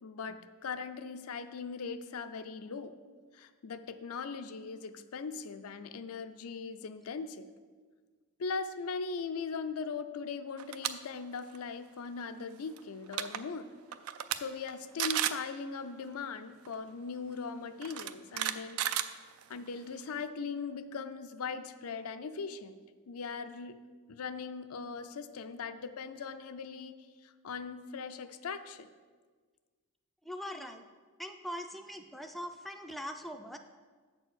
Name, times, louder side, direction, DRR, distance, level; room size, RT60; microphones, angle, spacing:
voice 1, 0.0-2.9 3.3-7.4 8.4-13.7 14.3-18.8 19.5-22.8 23.1-23.8 24.1-27.0 27.2-28.9, left 5 dB, 85° left, 10 dB, 0.5 m, -40 dB
sound 1, 10.6-10.9 11.3-11.6 12.8-12.9 13.1-13.4 13.9-14.4 14.7-14.8 15.0-15.4 16.7-16.8 17.8-19.7, right 11 dB, 80° right, 0.4 m, -33 dB
voice 2, 30.2-30.9 31.2-33.6, equal, ahead, 5 dB, 0.3 m, -42 dB
7.8 x 4.5 x 6.3 m, 1.5 s
head